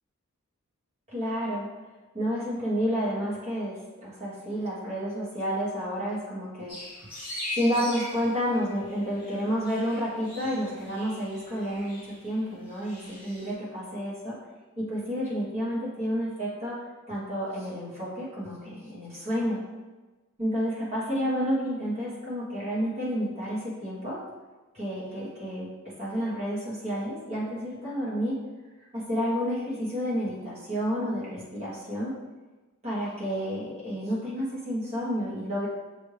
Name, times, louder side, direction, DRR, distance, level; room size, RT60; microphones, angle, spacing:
voice 1, 1.1-1.7 2.1-6.7 7.5-14.4 14.8-16.8 17.1-19.6 20.4-24.2 24.7-25.7 26.0-28.3 28.9-32.1 32.8-35.7, equal, 30° right, -8 dB, 1.3 m, -30 dB
sound 1, 6.7-13.5, left 1 dB, 5° right, 1.4 m, -41 dB
6.2 x 2.6 x 3.3 m, 1.2 s
head